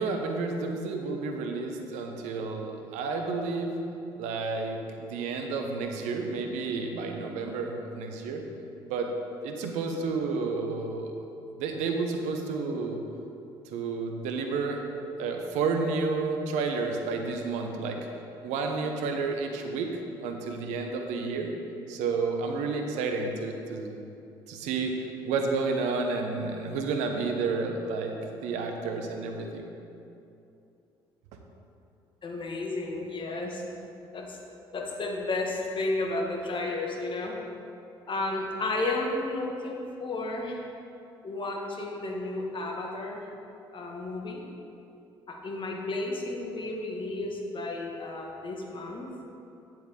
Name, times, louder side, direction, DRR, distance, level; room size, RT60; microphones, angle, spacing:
voice 1, 0.0-3.8 4.2-8.4 8.8-9.1 9.4-13.0 13.7-14.8 15.2-18.1 18.4-19.9 20.2-21.5 21.9-23.9 24.5-24.9 25.2-29.6, right 4 dB, 70° right, 3 dB, 0.9 m, -31 dB
voice 2, 32.2-33.6 34.1-34.4 34.7-37.4 38.1-40.6 41.2-43.2 43.7-44.4 45.3-49.1, left 2 dB, 40° left, 1 dB, 1.5 m, -32 dB
9.6 x 7.6 x 3.8 m, 2.7 s
hypercardioid pair, 50°, 13 cm